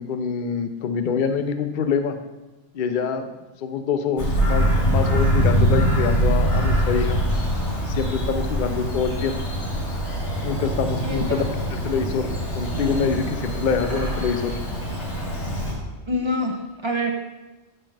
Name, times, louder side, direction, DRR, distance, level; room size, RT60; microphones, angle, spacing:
voice 1, 0.0-2.2 2.7-3.3 3.6-7.2 7.8-9.4 10.4-14.6, left 6 dB, 55° left, 8 dB, 0.7 m, -25 dB
Bird vocalization bird call bird song, 4.2-15.7, equal, 75° left, 2.3 m, -23 dB
voice 2, 11.0-11.5 16.1-17.1, left 1 dB, 35° right, 3 dB, 0.4 m, -26 dB
7.6 x 6.5 x 3.3 m, 1.1 s
omnidirectional pair, 1.2 m